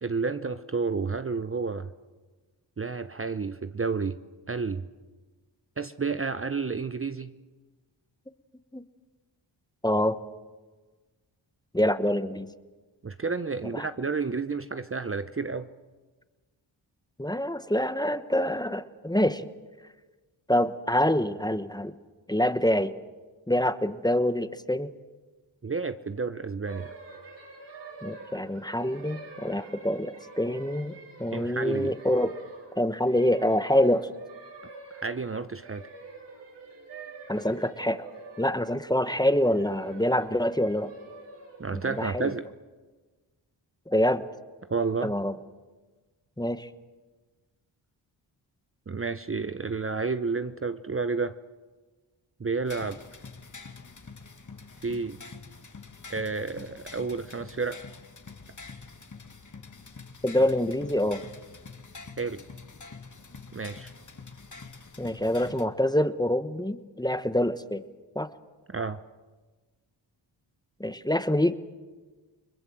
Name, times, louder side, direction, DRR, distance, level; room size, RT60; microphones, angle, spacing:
voice 1, 0.0-1.9 2.8-4.2 4.5-4.8 5.8-7.3 13.0-15.7 25.6-26.9 31.3-31.9 35.0-35.8 41.6-42.5 44.7-45.2 48.9-51.3 52.4-53.0 54.8-55.2 56.1-57.8 62.2-62.5 63.5-63.9 68.7-69.0, right 4 dB, 30° right, 11 dB, 0.8 m, -30 dB
voice 2, 9.8-10.2 11.7-12.5 13.7-13.9 17.2-19.5 20.5-21.9 22.3-22.9 23.5-24.9 28.0-32.3 32.8-34.1 37.3-38.0 38.4-40.9 41.7-42.3 43.9-44.2 45.0-45.4 46.4-46.7 60.2-61.2 65.0-67.8 68.1-68.3 70.8-71.6, left 1 dB, 10° left, 12 dB, 1.2 m, -26 dB
sound 1, 26.7-42.3, right 3 dB, 60° right, 4.8 m, -46 dB
sound 2, 52.7-65.7, left 4 dB, 40° left, 2.1 m, -46 dB
29.5 x 21.0 x 7.6 m, 1.3 s
cardioid pair, 60°, 47 cm